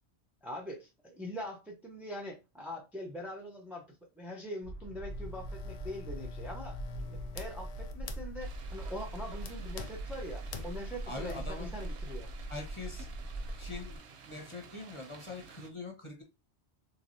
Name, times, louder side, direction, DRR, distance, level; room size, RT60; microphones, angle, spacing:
voice 1, 0.4-3.8 4.2-6.8 7.3-12.3, equal, ahead, 0.4 m, -43 dB
sound 1, 4.6-14.0, right 1 dB, 85° left, 1.5 m, -41 dB
sound 2, 5.1-11.4, left 6 dB, 65° left, 0.4 m, -49 dB
sound 3, 8.4-15.7, right 6 dB, 75° right, 1.0 m, -53 dB
voice 2, 11.0-11.7 12.5-13.1 13.5-16.2, left 3 dB, 30° left, 1.1 m, -43 dB
3.5 x 3.2 x 2.6 m
omnidirectional pair, 1.2 m